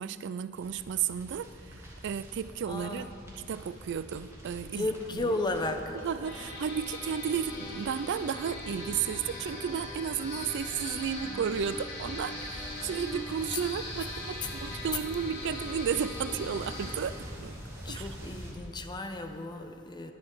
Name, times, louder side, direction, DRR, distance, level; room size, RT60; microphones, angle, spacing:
voice 1, 0.0-3.1 3.4-4.9 5.2-5.4 6.0-17.6 17.9-18.1, right 7 dB, 55° right, 15 dB, 0.4 m, -33 dB
sound 1, 0.5-18.5, equal, 15° right, 2.7 m, -45 dB
voice 2, 2.7-3.2 4.7-6.0 17.8-20.1, left 2 dB, 20° left, 6 dB, 0.8 m, -34 dB
sound 2, 6.2-16.9, left 1 dB, 55° left, 3.7 m, -40 dB
21.0 x 9.6 x 4.6 m, 2.8 s
head